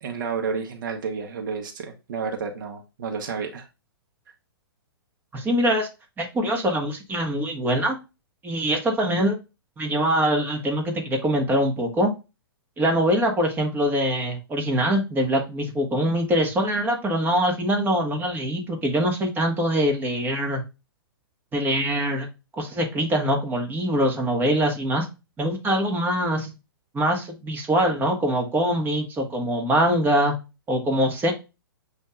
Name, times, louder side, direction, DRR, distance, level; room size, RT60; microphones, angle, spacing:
voice 1, 0.0-3.7, right 5 dB, 55° right, 3 dB, 1.1 m, -31 dB
voice 2, 5.3-5.9 6.2-8.0 8.4-9.4 9.8-12.1 12.8-20.6 21.5-22.3 22.6-25.1 25.4-26.5 26.9-30.3 30.7-31.3, equal, 15° right, 3 dB, 1.4 m, -23 dB
7.9 x 2.8 x 2.3 m, 0.27 s
figure-of-eight pair, 115°, 13 cm